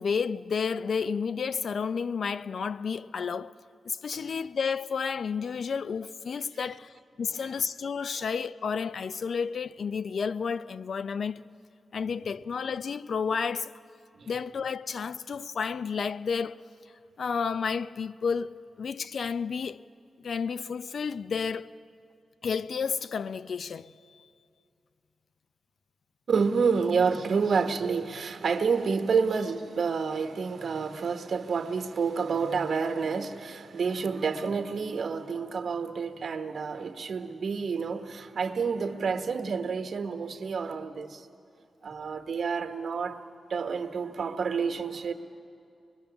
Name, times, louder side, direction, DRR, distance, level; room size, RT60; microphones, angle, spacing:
voice 1, 0.0-3.5 3.8-11.5 11.9-13.7 14.3-16.6 17.2-19.8 20.2-21.7 22.4-24.3, left 6 dB, 70° left, 0.5 m, -31 dB
voice 2, 26.3-41.2 41.8-43.2 43.5-45.1, right 5 dB, 70° right, 1.3 m, -29 dB
24.0 x 22.0 x 7.0 m
cardioid pair, 70°, 0 cm